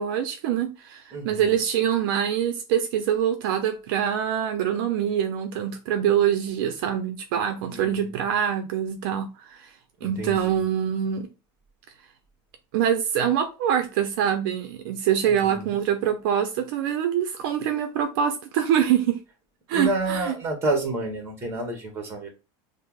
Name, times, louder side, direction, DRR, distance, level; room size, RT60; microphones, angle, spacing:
voice 1, 0.0-9.7 10.0-11.3 12.7-19.2 19.7-20.4, right 9 dB, 60° right, 0.5 m, -24 dB
voice 2, 1.1-1.5 7.6-8.2 10.0-10.6 15.2-15.7 19.7-22.3, right 2 dB, 20° right, 1.0 m, -30 dB
5.3 x 2.0 x 2.3 m
supercardioid pair, 155°, 13 cm